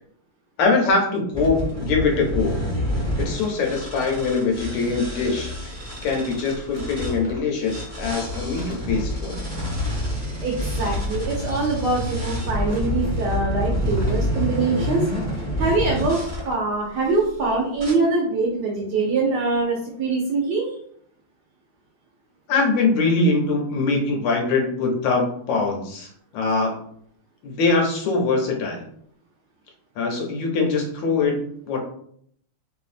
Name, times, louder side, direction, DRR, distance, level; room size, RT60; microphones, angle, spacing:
voice 1, 0.6-2.6 3.2-9.4 22.5-26.8 27.4-28.8 30.0-31.8, left 3 dB, 75° left, 1 dB, 1.2 m, -23 dB
sound 1, 1.3-7.2 7.6-16.4 17.0-17.4 17.8-17.9, equal, 20° right, 0.4 m, -28 dB
sound 2, 6.7-7.6 7.9-11.5 11.9-14.2 14.5-16.6, left 3 dB, 50° right, 0.8 m, -35 dB
voice 2, 10.4-15.0 15.3-20.7, right 3 dB, 75° right, -2 dB, 1.0 m, -24 dB
3.1 x 2.3 x 2.4 m, 0.65 s
omnidirectional pair, 2.2 m